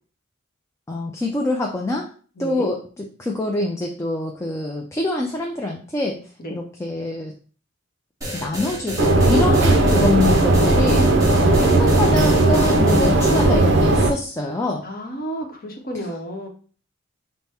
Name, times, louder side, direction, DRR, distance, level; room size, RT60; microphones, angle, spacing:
voice 1, 0.9-2.1 2.4-6.2 6.5-7.3 8.4-14.8, left 2 dB, 15° left, 0 dB, 0.4 m, -25 dB
voice 2, 2.4-2.7 6.4-6.6 9.6-10.3 11.6-11.7 14.8-16.5, equal, 45° left, 2 dB, 0.9 m, -31 dB
sound 1, 8.2-13.5, equal, 15° right, 1.1 m, -31 dB
sound 2, 9.0-14.1, right 2 dB, 60° right, 0.5 m, -16 dB
5.5 x 2.1 x 3.4 m, 0.41 s
head